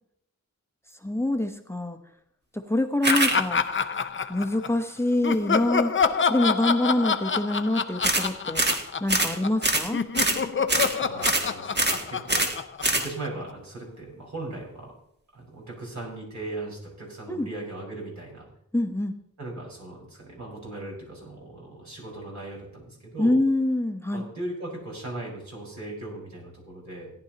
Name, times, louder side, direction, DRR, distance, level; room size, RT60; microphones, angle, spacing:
voice 1, 1.0-2.0 2.5-3.6 4.3-5.9 6.3-8.6 9.0-10.0 17.3-17.5 18.7-19.1 23.2-24.2, left 1 dB, 10° left, 7 dB, 0.9 m, -25 dB
sound 1, 3.0-3.4 8.0-8.3 8.5-8.8 9.1-9.3 9.6-9.9 10.1-10.4 10.7-10.9 11.2-11.5 11.7-12.0 12.3-12.5 12.8-13.1, right 2 dB, 35° right, 1.5 m, -23 dB
Laughter, 3.1-4.8 5.2-9.6 9.9-13.5, left 5 dB, 40° left, 0.6 m, -27 dB
voice 2, 11.0-12.5 12.9-14.9 15.3-18.5 19.4-23.4 24.1-27.1, right 2 dB, 60° right, -3 dB, 5.2 m, -38 dB
17.5 x 10.5 x 2.9 m, 0.72 s
wide cardioid pair, 90°, 32 cm